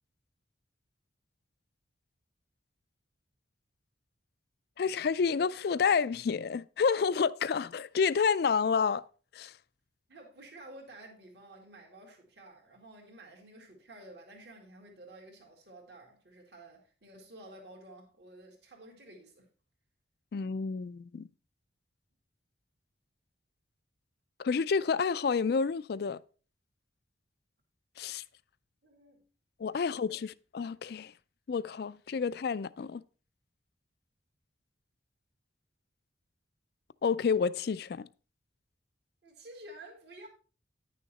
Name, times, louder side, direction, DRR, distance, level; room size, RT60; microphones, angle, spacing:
voice 1, 4.8-9.0 9.3-9.5 20.3-21.3 24.4-26.2 28.0-28.2 29.6-31.1 31.5-33.0 37.0-38.1, left 5 dB, 55° left, 0.3 m, -29 dB
voice 2, 10.1-19.5 28.8-29.3 29.7-29.8 30.1-30.2 39.2-40.3, right 1 dB, 60° right, 2.0 m, -52 dB
10.0 x 6.5 x 4.1 m
head